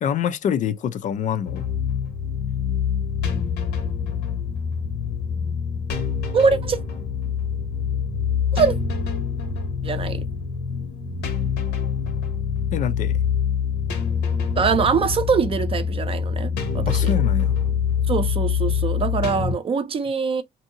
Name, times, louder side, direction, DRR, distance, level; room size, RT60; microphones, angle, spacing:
voice 1, 0.0-1.6 12.7-13.2 16.9-17.5, left 8 dB, 50° left, 0.4 m, -25 dB
sound 1, 1.5-19.5, left 7 dB, 75° left, 1.1 m, -25 dB
voice 2, 6.3-6.8 8.5-8.8 9.8-10.2 14.6-17.1 18.1-20.4, right 5 dB, 35° right, 0.5 m, -23 dB
2.7 x 2.7 x 2.6 m
cardioid pair, 110°, 17 cm